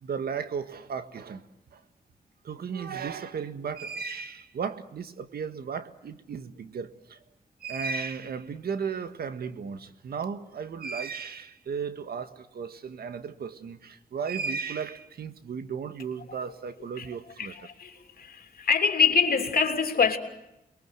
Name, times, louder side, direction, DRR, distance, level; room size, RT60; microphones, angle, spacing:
voice 1, 0.0-1.4 1.7-1.8 2.4-7.2 7.6-17.5, right 6 dB, 85° right, 1.7 m, -35 dB
voice 2, 17.4-20.2, left 6 dB, 75° left, 3.3 m, -25 dB
28.5 x 22.0 x 7.8 m
cardioid pair, 75°, 16 cm